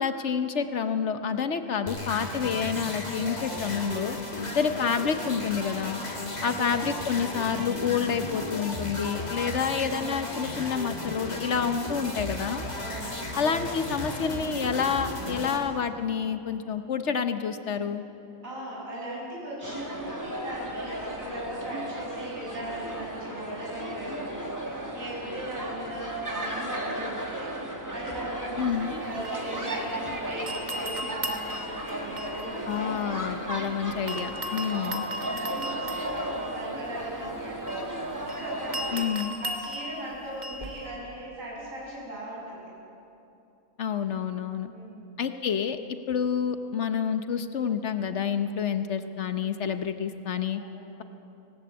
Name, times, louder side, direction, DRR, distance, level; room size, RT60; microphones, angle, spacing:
voice 1, 0.0-4.2 4.5-6.0 6.4-12.6 13.4-18.0 28.6-29.0 32.7-35.0 38.9-39.3 43.8-44.7 45.2-45.8 46.1-50.6, left 7 dB, 60° left, 9 dB, 1.1 m, -28 dB
sound 1, 1.9-15.6, left 1 dB, 30° left, 2.3 m, -35 dB
voice 2, 4.3-4.6 6.1-6.6 9.3-9.7 12.7-13.3 18.4-33.1 34.6-39.1 39.4-42.7 44.7-45.1 48.4-48.5 50.5-51.0, right 1 dB, 75° right, -5 dB, 7.9 m, -39 dB
sound 2, 19.6-39.1, right 1 dB, 15° right, 1.8 m, -35 dB
sound 3, 28.6-30.1 30.5-33.7 34.1-40.9, equal, 35° right, 1.7 m, -38 dB
18.5 x 18.0 x 8.8 m, 2.7 s
omnidirectional pair, 1.4 m